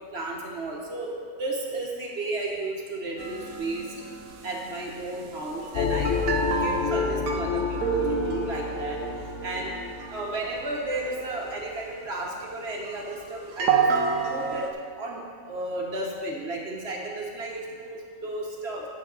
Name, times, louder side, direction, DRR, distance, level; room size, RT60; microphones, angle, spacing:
voice 1, 0.0-3.9 4.4-6.1 6.6-9.0 9.4-9.7 10.1-14.7 14.9-18.8, right 2 dB, 45° right, -1 dB, 1.4 m, -33 dB
sound 1, 3.2-14.7, right 6 dB, 90° right, 1.3 m, -31 dB
sound 2, 5.7-11.0, left 5 dB, 75° left, 1.1 m, -29 dB
9.7 x 7.7 x 4.0 m, 2.3 s
omnidirectional pair, 1.5 m